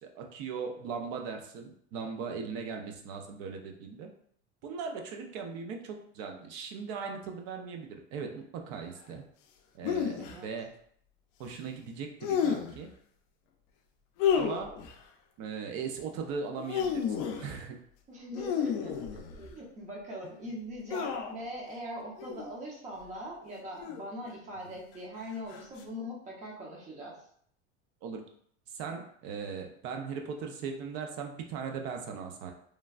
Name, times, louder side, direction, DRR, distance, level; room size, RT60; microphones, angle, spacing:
voice 1, 0.0-4.1 4.6-9.2 9.7-10.7 11.4-12.9 14.3-14.8 15.4-17.0 17.4-17.8 28.0-28.3 28.7-32.5, right 5 dB, 45° right, 4 dB, 0.5 m, -39 dB
sound 1, 9.8-10.4 12.2-12.9 14.2-15.0 16.5-17.5 18.4-19.5 20.9-21.5 22.2-22.5 23.8-24.3 25.5-25.8, left 7 dB, 50° left, 0.5 m, -31 dB
voice 2, 10.2-10.5 18.1-27.1, equal, 20° right, -3 dB, 0.8 m, -41 dB
3.2 x 2.2 x 2.4 m, 0.63 s
supercardioid pair, 140°, 34 cm